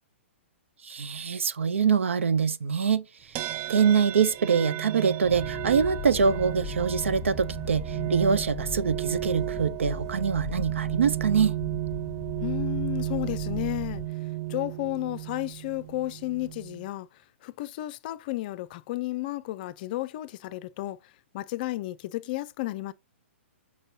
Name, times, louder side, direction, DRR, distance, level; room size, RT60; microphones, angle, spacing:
voice 1, 0.8-3.0 3.4-11.5, right 6 dB, 70° right, 0.6 m, -24 dB
sound 1, 3.4-16.9, right 17 dB, 30° right, 0.3 m, -34 dB
sound 2, 5.2-14.1, left 4 dB, 10° left, 1.4 m, -38 dB
voice 2, 12.4-14.0 14.5-17.1 17.4-21.0 21.3-22.9, left 17 dB, 45° left, 0.5 m, -32 dB
6.5 x 5.3 x 2.8 m
figure-of-eight pair, 115°, 7 cm